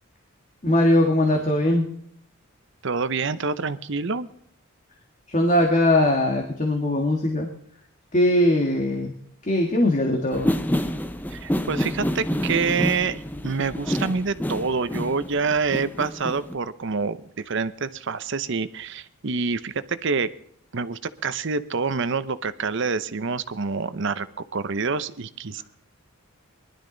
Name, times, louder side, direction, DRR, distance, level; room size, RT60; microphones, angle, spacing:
voice 1, 0.6-1.9 5.3-7.5 8.1-9.1 9.4-10.5 25.6-25.7, left 1 dB, 35° left, 2 dB, 1.7 m, -20 dB
voice 2, 2.8-4.3 11.3-20.3 20.7-24.3 24.5-25.6, right 4 dB, 55° right, 14 dB, 0.7 m, -27 dB
sound 1, 10.3-16.6, equal, 10° left, 0.7 m, -28 dB
20.0 x 12.0 x 3.9 m, 0.66 s
head